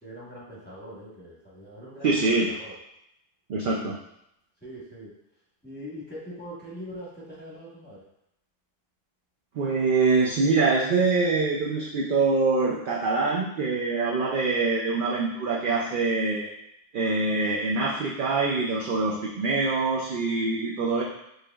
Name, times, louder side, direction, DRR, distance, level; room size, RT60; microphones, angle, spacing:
voice 1, 0.0-2.7 4.6-5.1 5.6-8.0, equal, 10° left, -8 dB, 1.2 m, -42 dB
voice 2, 2.0-2.5 3.5-4.0 9.5-16.5 16.9-21.0, right 3 dB, 60° right, -3 dB, 0.6 m, -24 dB
4.7 x 3.2 x 2.3 m, 0.80 s
omnidirectional pair, 1.3 m